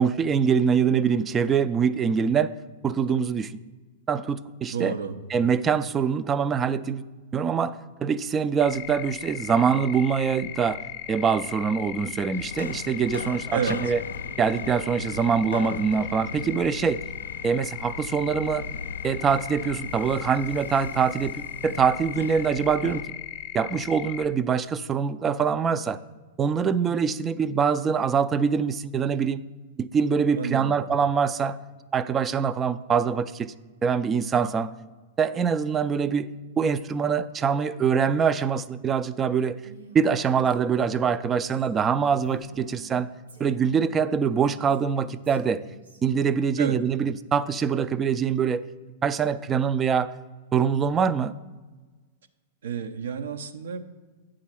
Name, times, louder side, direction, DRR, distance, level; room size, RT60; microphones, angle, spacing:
voice 1, 0.0-2.5 2.8-3.5 4.1-4.9 5.3-7.0 7.3-10.8 11.1-14.0 14.4-17.0 17.4-18.7 19.0-23.1 23.5-26.0 26.4-29.4 29.8-31.6 31.9-33.5 33.8-34.7 35.2-36.3 36.6-39.6 39.9-43.1 43.4-45.6 46.0-48.6 49.0-50.1 50.5-51.3, right 6 dB, 25° right, 15 dB, 0.3 m, -24 dB
voice 2, 4.7-5.2 13.5-13.8 30.4-30.8 46.6-46.8 52.6-53.8, right 7 dB, 70° right, 8 dB, 0.5 m, -30 dB
sound 1, 8.6-24.3, left 14 dB, 45° left, 0.7 m, -37 dB
sound 2, 12.3-23.0, left 4 dB, 80° left, 0.4 m, -38 dB
Female speech woman speaking, 39.5-43.0 43.3-46.0, right 3 dB, 85° right, 1.5 m, -50 dB
8.8 x 3.8 x 5.9 m, 1.3 s
hypercardioid pair, 100°, 0 cm